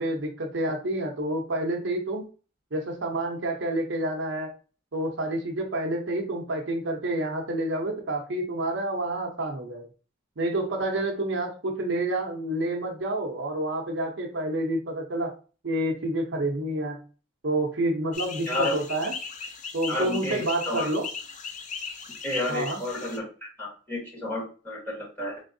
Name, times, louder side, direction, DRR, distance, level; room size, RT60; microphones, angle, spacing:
voice 1, 0.0-2.3 2.7-4.5 4.9-9.9 10.4-15.3 15.6-17.0 17.4-19.1 19.7-21.1 22.5-22.8, right 1 dB, 65° right, 2 dB, 0.7 m, -28 dB
sound 1, 18.1-23.2, left 5 dB, 40° left, 0.4 m, -37 dB
voice 2, 19.9-20.9 22.2-23.2 23.6-25.4, left 1 dB, 10° left, -5 dB, 1.8 m, -31 dB
3.7 x 3.5 x 2.6 m, 0.36 s
head